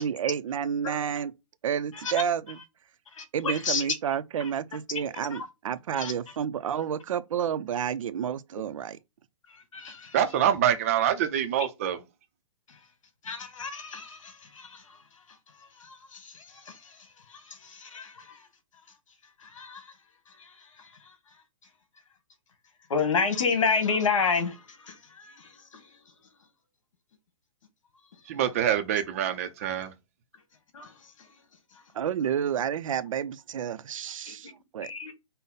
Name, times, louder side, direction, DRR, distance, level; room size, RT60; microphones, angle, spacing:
voice 1, 0.0-1.3 1.6-2.6 3.3-9.0 31.9-34.9, right 8 dB, 80° right, 0.5 m, -30 dB
voice 2, 3.2-3.8 4.4-4.5 5.3-5.5 5.9-6.1 9.7-10.2 13.2-15.0 15.6-17.0 17.3-18.4 19.4-19.9 20.4-20.5 20.8-21.1 22.9-25.8 30.7-30.9 34.3-34.4 34.8-35.1, left 5 dB, 75° left, 1.4 m, -31 dB
voice 3, 10.1-12.0 28.3-29.9, right 10 dB, 25° right, 0.4 m, -25 dB
5.4 x 2.0 x 3.9 m
hypercardioid pair, 170°, 17 cm